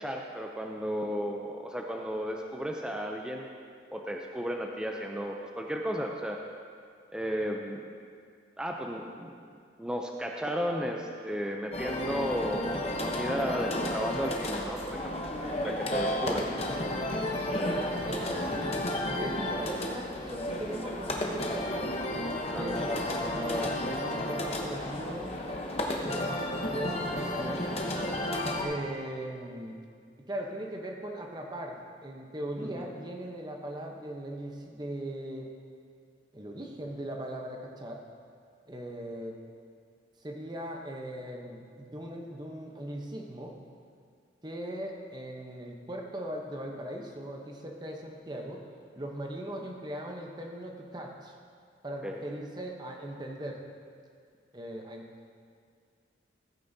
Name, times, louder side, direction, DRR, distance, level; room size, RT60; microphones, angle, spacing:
voice 1, 0.0-3.5 3.9-6.4 7.1-7.8 8.6-9.3 9.8-12.7 13.0-15.3 15.6-16.4 22.4-22.7 32.6-32.9 52.0-52.2, equal, 5° right, 1 dB, 0.4 m, -34 dB
sound 1, 11.7-28.6, left 1 dB, 30° left, 0.9 m, -32 dB
voice 2, 17.6-22.0 22.6-25.4 26.0-26.3 26.6-27.7 28.6-29.8 30.3-35.5 36.3-38.0 38.7-39.4 40.2-43.6 44.4-48.7 49.0-51.4 51.8-53.6 54.5-55.1, right 1 dB, 20° right, 1 dB, 0.8 m, -39 dB
14.5 x 9.2 x 2.7 m, 2.2 s
head